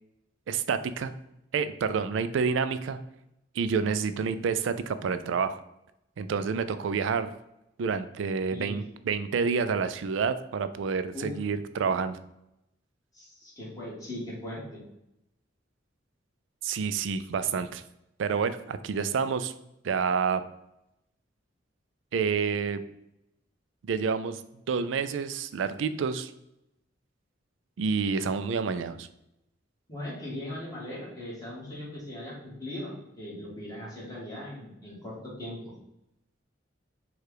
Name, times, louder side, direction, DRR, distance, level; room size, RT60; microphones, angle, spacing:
voice 1, 0.5-1.1 1.5-3.0 3.6-5.6 6.2-7.3 7.8-12.2 16.6-17.8 18.2-19.5 19.8-20.4 22.1-22.8 23.9-24.4 24.7-26.3 27.8-29.1, right 5 dB, 75° right, 12 dB, 0.3 m, -28 dB
voice 2, 13.1-14.8 29.9-35.6, left 1 dB, 20° left, -5 dB, 1.6 m, -39 dB
4.6 x 2.4 x 4.7 m, 0.85 s
head